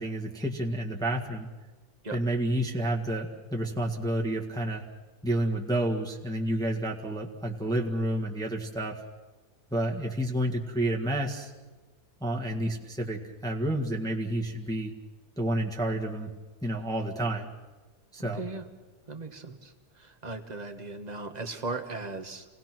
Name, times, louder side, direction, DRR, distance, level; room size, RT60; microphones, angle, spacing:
voice 1, 0.0-1.5 2.1-4.8 5.2-9.0 9.7-11.5 12.2-14.9 15.4-16.3 16.6-17.5 18.1-18.5, right 1 dB, ahead, -1 dB, 1.7 m, -30 dB
voice 2, 18.3-18.6 19.1-22.4, right 3 dB, 25° right, 6 dB, 1.6 m, -37 dB
27.5 x 19.0 x 6.1 m, 1.2 s
omnidirectional pair, 1.8 m